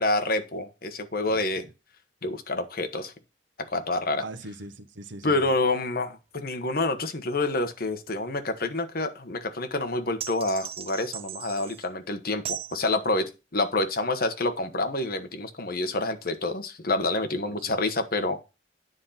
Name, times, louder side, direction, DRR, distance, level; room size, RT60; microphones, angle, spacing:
voice 1, 0.0-1.6 2.2-3.1 3.7-4.2 5.2-18.4, left 2 dB, 50° left, 1.2 m, -28 dB
voice 2, 1.3-1.7 4.2-5.5 17.5-17.9, right 2 dB, 80° right, 1.0 m, -42 dB
sound 1, 10.2-11.9 12.5-12.8, right 10 dB, 30° right, 0.4 m, -37 dB
9.5 x 3.9 x 5.7 m
head